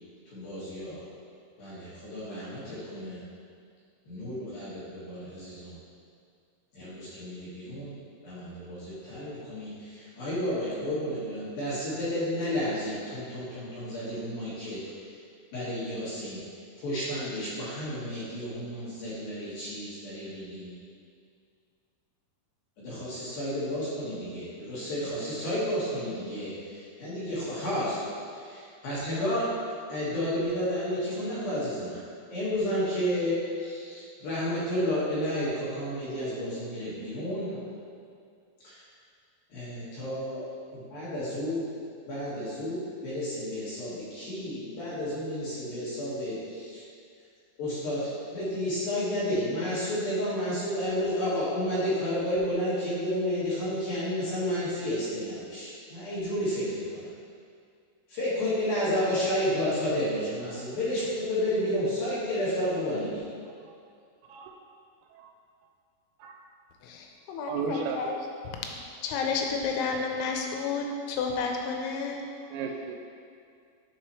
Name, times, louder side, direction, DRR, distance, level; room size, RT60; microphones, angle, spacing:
voice 1, 0.3-1.0 1.6-3.2 4.1-5.7 6.7-7.9 8.2-14.8 15.5-16.4 16.8-20.7 22.8-28.0 28.3-29.5 29.9-32.0 32.3-37.6 38.6-38.8 39.5-40.5 40.7-41.6 42.1-46.8 47.6-57.1 58.1-63.2, equal, 60° left, -10 dB, 2.7 m, -31 dB
voice 2, 66.8-68.3 69.0-72.2, left 5 dB, 90° left, 2 dB, 3.3 m, -31 dB
voice 3, 67.5-68.0 72.5-73.0, right 5 dB, 85° right, 2 dB, 3.0 m, -34 dB
10.5 x 4.7 x 3.1 m, 2.3 s
omnidirectional pair, 5.8 m